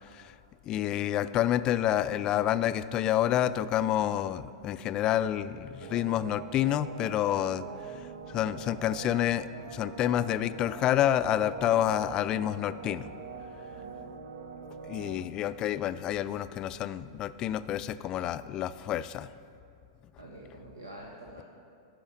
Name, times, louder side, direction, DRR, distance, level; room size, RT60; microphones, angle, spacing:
voice 1, 0.7-13.1 14.8-19.3, left 11 dB, 35° left, 14 dB, 0.3 m, -29 dB
sound 1, 5.8-15.3, right 6 dB, 65° right, 0.7 m, -44 dB
voice 2, 7.5-8.0 13.7-14.0 20.2-21.4, right 1 dB, 85° right, -1 dB, 1.0 m, -48 dB
12.0 x 4.9 x 7.0 m, 2.5 s
hypercardioid pair, 100°, 2 cm